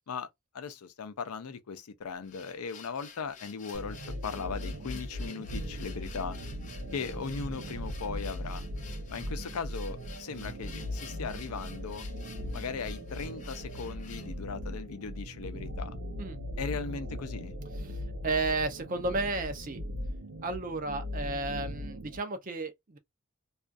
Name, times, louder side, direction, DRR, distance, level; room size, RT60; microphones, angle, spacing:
voice 1, 0.5-4.0 4.2-6.4 6.9-8.6 9.1-12.1 12.5-15.9 16.6-17.6, left 5 dB, 90° left, 0.5 m, -38 dB
sound 1, 2.2-14.4, left 6 dB, 35° left, 0.4 m, -51 dB
sound 2, 3.7-22.2, equal, 90° right, 0.7 m, -39 dB
voice 2, 17.7-19.8 20.4-23.0, right 3 dB, 40° right, 0.5 m, -33 dB
2.4 x 2.3 x 2.5 m
head